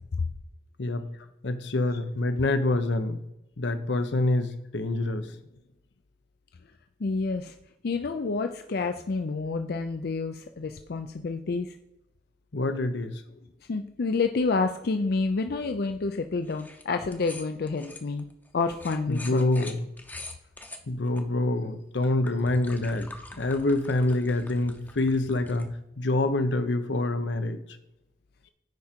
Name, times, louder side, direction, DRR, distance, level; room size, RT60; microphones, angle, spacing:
voice 1, 1.4-3.2 3.6-5.3 12.5-13.1 19.1-19.9 20.9-23.1 23.4-27.6, left 2 dB, 80° left, 9 dB, 0.8 m, -26 dB
voice 2, 7.0-7.5 7.8-11.7 13.7-18.2 18.5-19.6, left 4 dB, 60° left, 7 dB, 0.5 m, -29 dB
sound 1, 16.5-16.8 17.1-21.2 21.8-25.7, left 2 dB, 10° left, 0.8 m, -45 dB
9.3 x 5.0 x 4.4 m, 0.89 s
head